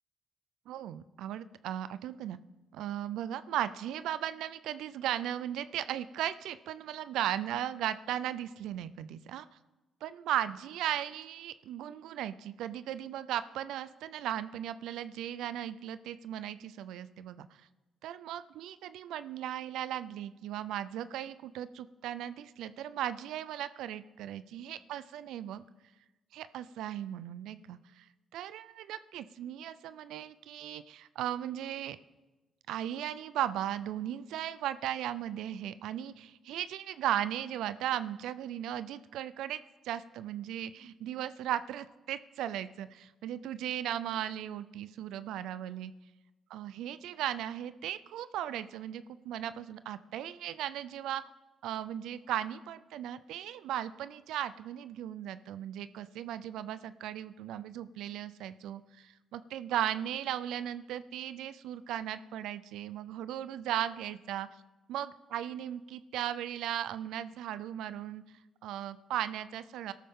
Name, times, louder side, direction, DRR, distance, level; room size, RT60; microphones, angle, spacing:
voice 1, 0.7-2.4 2.7-9.5 10.0-17.6 18.0-25.6 26.3-28.0 28.3-32.0 32.7-45.9 46.5-51.2 51.6-64.5 64.9-68.2 68.6-69.9, right 11 dB, 85° right, 14 dB, 0.4 m, -37 dB
17.5 x 13.0 x 3.7 m, 1.1 s
cardioid pair, 90°, 0 cm